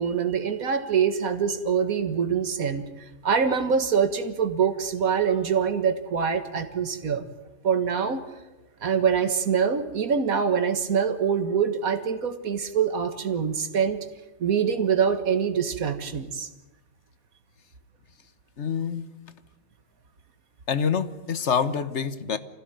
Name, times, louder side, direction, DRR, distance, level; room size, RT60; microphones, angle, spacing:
voice 1, 0.0-7.3 7.6-8.4 8.8-14.1 14.4-16.5, right 7 dB, 80° right, 9 dB, 2.0 m, -24 dB
voice 2, 18.6-19.1 20.7-22.4, left 6 dB, 55° left, 13 dB, 1.4 m, -26 dB
25.5 x 16.5 x 9.1 m, 1.1 s
omnidirectional pair, 1.5 m